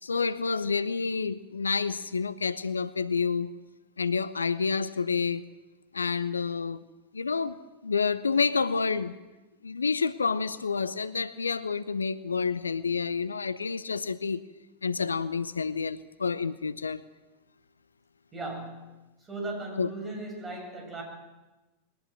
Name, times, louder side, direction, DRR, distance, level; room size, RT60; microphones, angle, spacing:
voice 1, 0.0-3.5 4.0-5.4 5.9-6.8 7.1-9.1 9.6-14.4 14.8-17.0 19.8-19.9, left 5 dB, 75° left, 0.7 m, -29 dB
voice 2, 18.3-18.9 19.2-21.0, right 2 dB, 20° right, 7.9 m, -37 dB
22.0 x 18.5 x 7.7 m
figure-of-eight pair, 90°, 0 cm